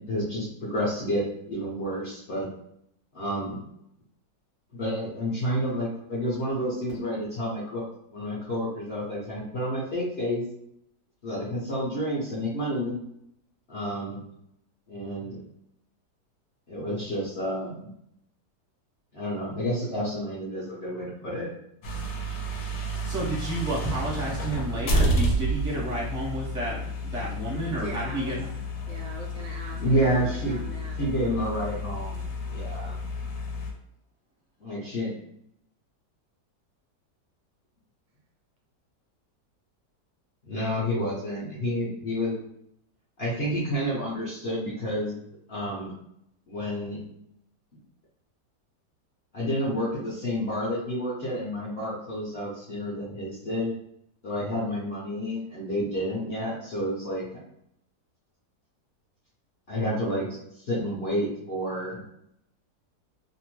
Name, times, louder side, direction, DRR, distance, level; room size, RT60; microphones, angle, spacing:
voice 1, 0.1-2.5 3.1-3.6 4.7-7.8 8.1-10.4 11.2-13.0 13.7-14.2 14.9-15.4 16.7-17.9 19.1-21.5 29.7-30.6 31.0-33.0 34.6-35.1 40.4-42.4 43.2-45.2 45.5-45.9 46.5-47.0 49.3-53.7 54.2-57.2 59.7-60.3 60.6-62.0, equal, 50° left, -7 dB, 0.8 m, -29 dB
sound 1, 21.8-33.7, equal, 75° left, 1.1 m, -30 dB
voice 2, 23.0-28.5, right 1 dB, 5° right, -6 dB, 0.5 m, -31 dB
voice 3, 27.6-28.4 28.9-31.1, right 2 dB, 70° right, 0 dB, 1.0 m, -41 dB
2.8 x 2.0 x 3.0 m, 0.74 s
omnidirectional pair, 1.8 m